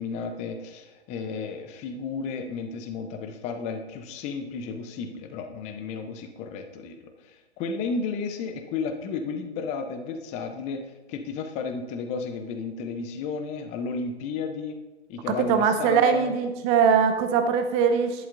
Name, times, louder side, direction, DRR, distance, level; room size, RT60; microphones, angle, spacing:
voice 1, 0.0-7.0 7.3-14.8 15.1-16.3, left 5 dB, 20° left, 6 dB, 0.7 m, -33 dB
voice 2, 15.5-18.3, right 6 dB, 20° right, 8 dB, 0.6 m, -21 dB
11.5 x 11.0 x 2.6 m, 1.2 s
hypercardioid pair, 130°, 34 cm